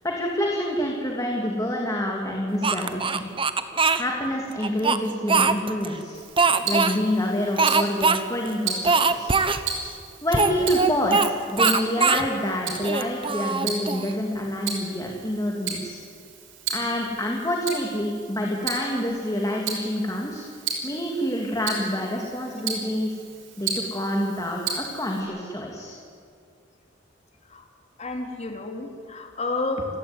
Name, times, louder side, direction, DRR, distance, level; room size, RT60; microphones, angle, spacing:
voice 1, 0.0-3.3 3.9-6.2 6.6-9.4 10.2-16.0 16.7-20.4 20.8-23.2 23.6-25.9, equal, 20° left, 0 dB, 2.6 m, -27 dB
Speech, 2.6-4.0 4.6-5.9 6.4-7.0 7.6-8.2 8.5-8.6 8.8-9.6 10.3-11.3 11.6-12.3 12.8-14.1, right 4 dB, 30° right, 1.1 m, -21 dB
Tick-tock, 6.1-25.2, right 5 dB, 85° right, 5.6 m, -35 dB
voice 2, 28.0-30.0, left 2 dB, 35° left, 3 dB, 3.3 m, -30 dB
29.0 x 16.0 x 9.7 m, 2.4 s
head